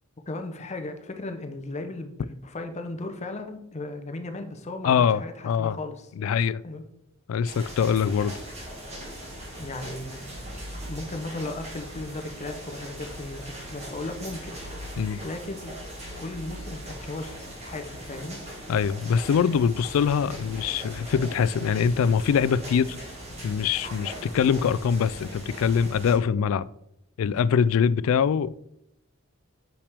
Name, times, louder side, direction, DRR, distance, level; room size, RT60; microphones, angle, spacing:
voice 1, 0.3-6.1 6.6-6.8 9.6-10.2 10.9-14.6 15.2-15.8 16.2-18.4, left 2 dB, 35° left, 0.7 m, -36 dB
voice 2, 4.8-5.8 6.2-6.6 7.3-8.4 15.0-15.2 18.7-23.0 23.4-26.7 27.2-28.6, left 7 dB, 75° left, 0.3 m, -23 dB
sound 1, 7.4-26.1, equal, 30° right, 1.9 m, -40 dB
6.4 x 5.8 x 3.4 m
head